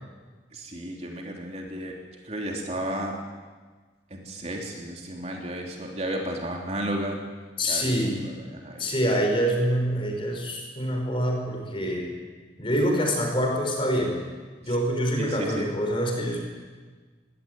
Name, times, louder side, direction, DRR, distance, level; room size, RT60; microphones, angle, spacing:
voice 1, 0.5-2.0 2.2-3.2 4.1-7.2 7.7-7.9 8.2-8.9 14.7-14.8 15.2-15.7, right 1 dB, 35° right, 1 dB, 3.3 m, -33 dB
voice 2, 7.6-8.3 8.8-12.2 12.6-14.2 14.7-16.4, equal, 30° left, 2 dB, 4.6 m, -25 dB
22.0 x 17.0 x 9.1 m, 1.4 s
head